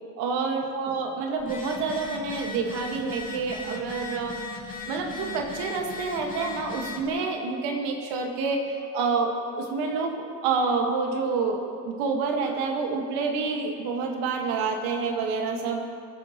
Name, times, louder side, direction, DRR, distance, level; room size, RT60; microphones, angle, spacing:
voice 1, 0.2-4.4 4.9-15.8, right 4 dB, 80° right, 2 dB, 1.7 m, -28 dB
Telephone, 1.4-7.1, left 3 dB, 20° left, 2.5 m, -38 dB
24.0 x 9.1 x 3.0 m, 2.4 s
supercardioid pair, 65°, 39 cm